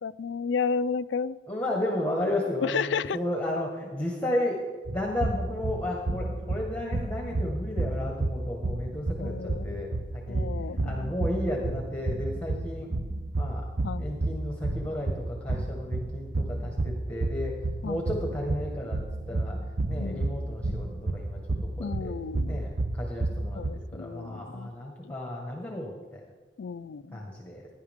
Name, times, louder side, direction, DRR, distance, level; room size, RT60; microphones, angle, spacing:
voice 1, 0.0-1.4 2.6-3.2 9.2-9.8 10.3-11.1 13.8-14.0 17.8-18.0 20.0-20.3 21.8-22.6 23.5-24.7 25.0-25.1 26.6-27.3, left 5 dB, 80° left, 16 dB, 0.4 m, -32 dB
voice 2, 1.5-4.6 4.9-10.5 10.8-12.9 13.4-13.6 14.0-17.5 17.8-19.0 19.3-19.6 19.9-21.4 21.8-22.1 22.5-23.6 23.9-26.2 27.1-27.7, left 1 dB, 10° left, 0 dB, 1.5 m, -33 dB
sound 1, 4.9-23.7, right 2 dB, 40° right, 0.7 m, -31 dB
17.0 x 10.5 x 3.6 m, 1.4 s
head